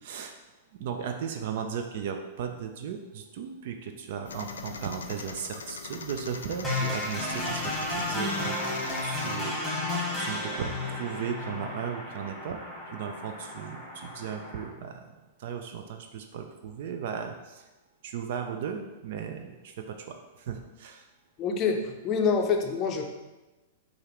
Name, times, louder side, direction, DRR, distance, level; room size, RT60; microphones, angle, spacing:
voice 1, 0.0-0.3 0.8-8.6 9.0-9.6 10.2-12.6 12.9-15.1 15.4-17.6 18.0-21.1, right 7 dB, 60° right, 5 dB, 0.4 m, -36 dB
sound 1, 4.3-9.4, left 5 dB, 90° left, 0.3 m, -41 dB
sound 2, 6.6-14.6, left 2 dB, 5° left, 1.4 m, -33 dB
voice 2, 21.4-23.0, left 5 dB, 35° left, 4 dB, 0.5 m, -26 dB
4.9 x 2.4 x 3.0 m, 1.1 s
hypercardioid pair, 120°, 0 cm